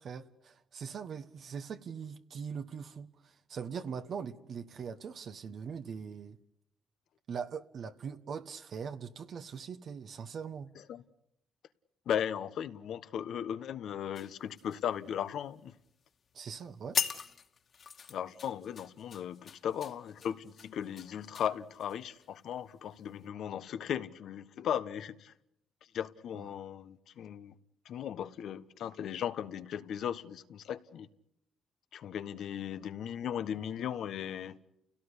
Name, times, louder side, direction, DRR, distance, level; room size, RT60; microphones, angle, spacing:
voice 1, 0.0-6.4 7.3-10.7 16.3-17.0 26.3-26.5, right 6 dB, 60° right, 1.3 m, -41 dB
voice 2, 12.1-15.7 18.1-25.3 25.9-27.5 27.8-31.1 31.9-34.6, left 9 dB, 70° left, 1.3 m, -37 dB
sound 1, 14.1-15.4 15.8-16.1 16.5-16.6 16.9-22.3 22.8-23.0, left 6 dB, 50° left, 2.5 m, -40 dB
30.0 x 17.5 x 9.9 m
cardioid pair, 90°, 0 cm